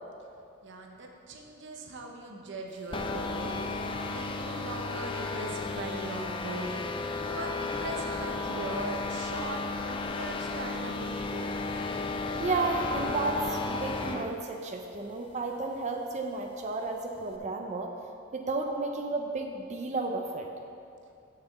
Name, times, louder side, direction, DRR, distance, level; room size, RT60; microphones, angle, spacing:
voice 1, 0.6-9.6 9.9-11.7, right 2 dB, 55° right, 1 dB, 0.9 m, -40 dB
sound 1, 2.9-14.3, left 3 dB, 25° left, 0.4 m, -34 dB
voice 2, 12.4-17.9 18.3-20.5, right 3 dB, 35° right, 3 dB, 0.5 m, -32 dB
6.8 x 6.7 x 6.8 m, 2.6 s
head